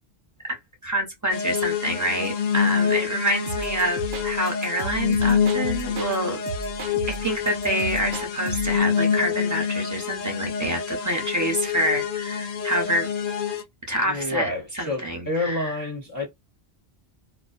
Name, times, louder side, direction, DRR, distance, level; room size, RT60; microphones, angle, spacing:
voice 1, 0.8-6.4 7.1-13.1 13.9-15.8, right 1 dB, 20° right, 0.7 m, -27 dB
sound 1, 1.3-13.6, left 7 dB, 60° left, 0.7 m, -26 dB
sound 2, 3.5-6.2 6.5-8.8, right 4 dB, 80° right, 0.9 m, -35 dB
voice 2, 14.0-16.3, left 2 dB, 25° left, 0.6 m, -29 dB
2.5 x 2.2 x 2.4 m
omnidirectional pair, 1.1 m